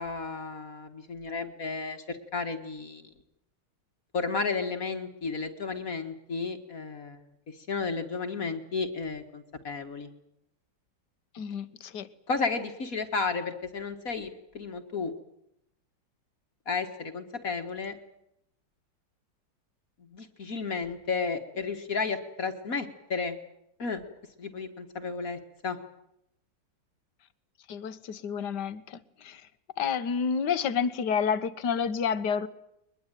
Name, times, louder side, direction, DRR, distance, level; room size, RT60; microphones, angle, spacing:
voice 1, 0.0-3.1 4.1-7.2 7.5-10.1 12.3-15.1 16.7-18.0 20.0-23.4 23.8-24.0 24.4-25.8, left 4 dB, 50° left, 7 dB, 2.0 m, -33 dB
voice 2, 11.3-12.1 27.7-29.5 29.8-32.5, left 6 dB, 65° left, 13 dB, 1.7 m, -29 dB
22.5 x 21.5 x 9.1 m, 0.80 s
omnidirectional pair, 2.0 m